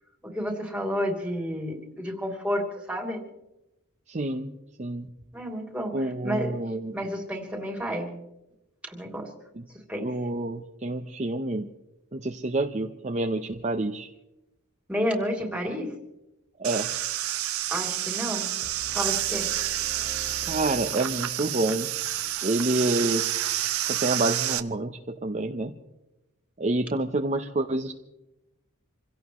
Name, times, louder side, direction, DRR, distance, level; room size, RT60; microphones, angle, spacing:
voice 1, 0.2-3.2 5.3-6.5 6.9-8.1 8.9-9.3 9.9-10.1 14.9-15.9 17.7-18.5 18.9-19.5, equal, 5° right, 0 dB, 3.1 m, -30 dB
voice 2, 4.1-4.5 4.8-5.1 5.9-6.9 10.0-11.7 12.1-14.1 16.6-16.9 20.5-21.9 22.4-23.2 23.8-25.7 26.6-27.9, right 2 dB, 35° right, 4 dB, 0.8 m, -28 dB
sound 1, 16.6-24.6, right 13 dB, 80° right, 0.9 m, -29 dB
sound 2, 18.6-21.6, left 1 dB, 40° left, 4.6 m, -44 dB
27.5 x 17.0 x 3.1 m, 0.92 s
head